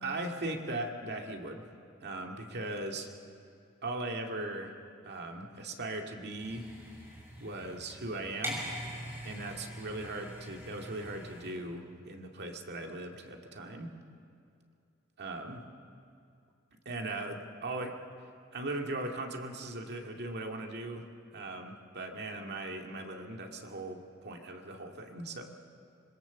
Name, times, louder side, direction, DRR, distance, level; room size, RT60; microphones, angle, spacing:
voice 1, 0.0-1.6 2.0-3.1 3.8-4.7 5.0-6.7 7.4-8.6 9.2-13.9 15.2-15.7 16.9-18.0 18.5-21.1 21.3-25.4, right 2 dB, 55° right, 2 dB, 2.1 m, -39 dB
sound 1, 6.4-11.5, equal, 10° right, 6.2 m, -43 dB
25.5 x 21.5 x 7.0 m, 2.5 s
head